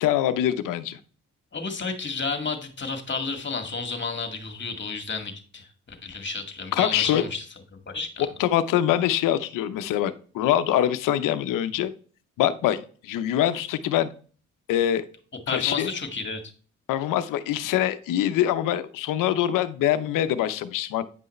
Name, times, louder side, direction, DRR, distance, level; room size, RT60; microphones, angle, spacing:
voice 1, 0.0-1.0 6.7-7.2 8.4-11.9 12.4-14.1 14.7-15.0 15.5-15.9 16.9-21.0, left 11 dB, 80° left, 12 dB, 0.8 m, -24 dB
voice 2, 1.5-7.4 7.9-8.3 15.5-16.4, left 4 dB, 35° left, 5 dB, 2.0 m, -31 dB
9.5 x 5.5 x 3.2 m, 0.41 s
supercardioid pair, 65°, 32 cm